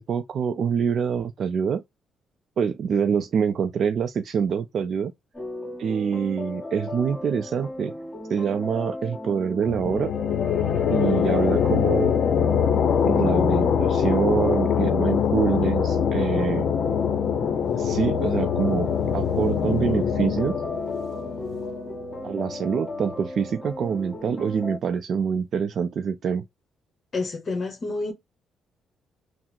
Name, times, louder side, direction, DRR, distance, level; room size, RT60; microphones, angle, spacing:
voice 1, 0.0-1.8 2.6-5.1 5.8-7.9 8.3-10.1 10.9-12.1 13.0-16.7 17.7-20.6 22.2-26.4, right 7 dB, 60° right, 0.4 m, -25 dB
sound 1, 5.3-24.8, left 1 dB, 20° left, 1.8 m, -36 dB
sound 2, 9.7-23.1, left 8 dB, 65° left, 0.6 m, -24 dB
voice 2, 27.1-28.1, left 3 dB, 40° left, 1.1 m, -28 dB
3.8 x 2.0 x 4.4 m
cardioid pair, 90°, 0 cm